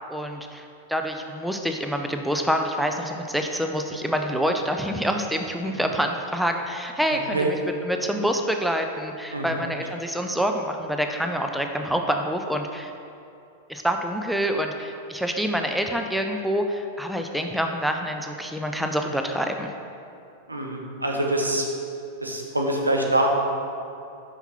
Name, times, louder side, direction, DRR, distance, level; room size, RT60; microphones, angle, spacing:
voice 1, 0.1-12.9 13.7-19.7, equal, ahead, 4 dB, 0.4 m, -27 dB
voice 2, 7.1-7.5 9.3-9.6 20.5-21.7 22.2-23.3, right 1 dB, 85° right, 1 dB, 0.8 m, -25 dB
5.7 x 5.5 x 4.2 m, 2.6 s
figure-of-eight pair, 90°, 0 cm